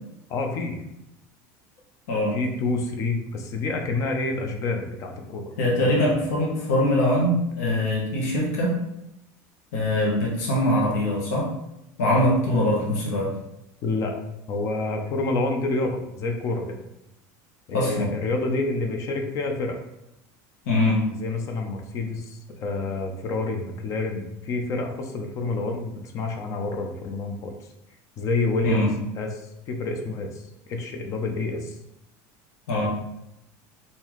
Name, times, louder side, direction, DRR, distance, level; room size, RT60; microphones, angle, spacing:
voice 1, 0.3-0.8 2.3-5.5 5.8-6.2 13.8-14.2 14.5-16.8 17.7-19.8 21.1-27.5 28.2-28.9 29.2-30.4 30.7-31.8, left 3 dB, 40° left, 4 dB, 0.5 m, -28 dB
voice 2, 2.1-2.4 5.6-8.7 9.7-11.5 12.0-13.3 17.7-18.1 20.7-21.1 28.6-28.9 32.7-32.9, left 1 dB, 85° left, -3 dB, 1.0 m, -22 dB
3.7 x 2.6 x 3.0 m, 0.85 s
cardioid pair, 155°, 8 cm